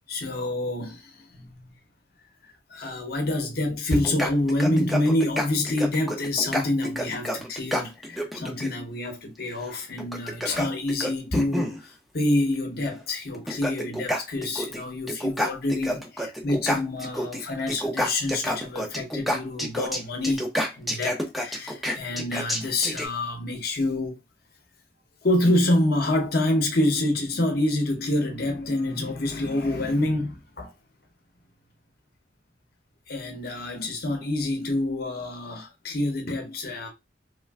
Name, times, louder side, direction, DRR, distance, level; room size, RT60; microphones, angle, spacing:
voice 1, 0.1-1.7 2.7-24.2 25.2-30.7 33.1-36.9, left 1 dB, 55° left, 0.8 m, -27 dB
sound 1, 3.9-8.7 10.0-11.8 12.9-13.0 13.3-14.8 15.1-17.4 17.7-23.1, equal, ahead, 0.5 m, -29 dB
3.2 x 2.4 x 2.2 m
head